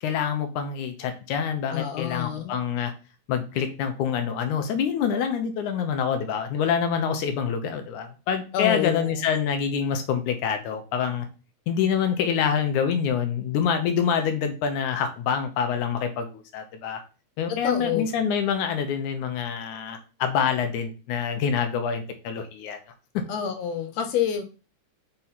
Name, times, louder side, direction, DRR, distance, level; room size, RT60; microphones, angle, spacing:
voice 1, 0.0-2.9 3.3-11.3 11.7-17.0 17.4-22.8 23.1-23.2, left 7 dB, 90° left, 7 dB, 2.3 m, -26 dB
voice 2, 1.7-2.6 8.5-9.2 17.5-18.1 23.3-24.4, left 9 dB, 70° left, 5 dB, 1.9 m, -28 dB
5.6 x 4.3 x 4.0 m, 0.34 s
omnidirectional pair, 3.4 m